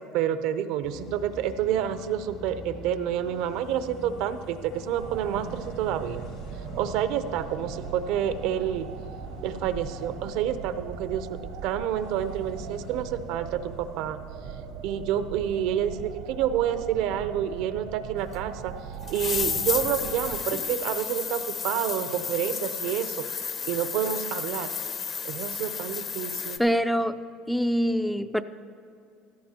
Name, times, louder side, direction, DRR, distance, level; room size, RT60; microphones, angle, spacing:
voice 1, 0.0-6.2 6.7-8.9 9.4-14.2 14.8-18.7 19.1-23.2 23.6-24.7 25.2-26.6, right 10 dB, 70° right, 11 dB, 0.6 m, -29 dB
sound 1, 0.8-13.0, left 3 dB, 70° left, 2.9 m, -44 dB
sound 2, 5.0-20.4, right 7 dB, 85° right, 1.1 m, -40 dB
sound 3, 18.3-18.4 19.0-26.6, left 6 dB, 35° left, 0.7 m, -32 dB
voice 2, 26.6-27.2 27.5-28.4, equal, ahead, 10 dB, 0.3 m, -24 dB
16.0 x 13.0 x 2.9 m, 2.4 s
cardioid pair, 125°, 0 cm